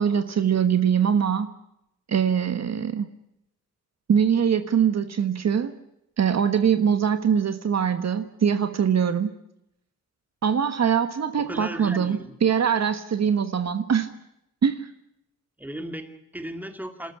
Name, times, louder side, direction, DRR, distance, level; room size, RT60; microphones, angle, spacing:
voice 1, 0.0-1.5 2.1-3.1 4.1-5.7 6.2-9.3 10.4-14.1 14.6-14.9, right 7 dB, 55° right, 9 dB, 1.4 m, -22 dB
voice 2, 11.4-12.4 15.6-17.1, right 1 dB, 5° right, 7 dB, 2.4 m, -36 dB
27.0 x 13.5 x 9.8 m, 0.81 s
cardioid pair, 110°, 33 cm